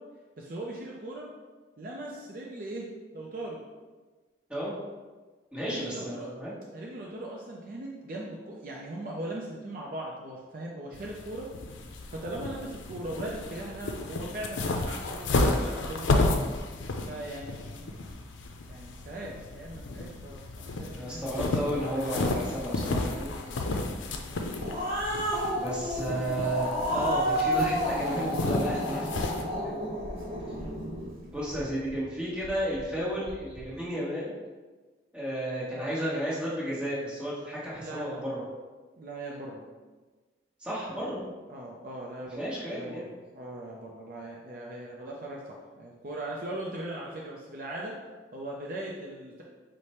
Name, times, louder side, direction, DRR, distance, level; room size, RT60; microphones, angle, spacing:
voice 1, 0.4-1.3 1.8-2.9 3.1-3.6 5.7-6.3 6.7-11.5 12.1-16.2 17.1-17.9 18.7-21.5 23.6-24.8 30.5-30.7 35.8-36.0 37.8-38.2 39.0-39.7 41.5-42.4 42.7-47.9 48.3-49.4, right 1 dB, 45° right, -2 dB, 0.5 m, -39 dB
voice 2, 5.5-6.6 20.9-23.7 25.5-29.1 31.3-34.4 35.1-38.4 40.6-41.2 42.3-43.1, right 1 dB, 5° right, -8 dB, 1.1 m, -33 dB
sound 1, 10.9-29.4, left 2 dB, 85° left, 0.5 m, -32 dB
sound 2, 22.2-33.9, left 1 dB, 30° left, 0.5 m, -47 dB
Growling, 24.3-31.1, equal, 30° right, 1.0 m, -31 dB
4.9 x 2.1 x 4.2 m, 1.3 s
head